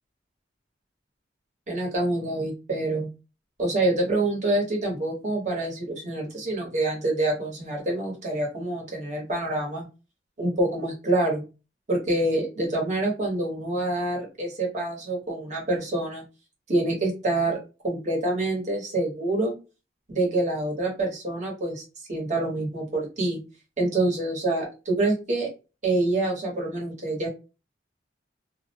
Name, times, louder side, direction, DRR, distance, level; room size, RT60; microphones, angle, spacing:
voice 1, 1.7-3.1 3.6-9.8 10.4-11.4 11.9-16.2 16.7-17.6 17.8-19.5 20.1-21.8 22.1-23.4 23.8-25.5 25.8-27.3, right 2 dB, 40° right, -1 dB, 1.1 m, -26 dB
2.5 x 2.0 x 2.8 m, 0.30 s
head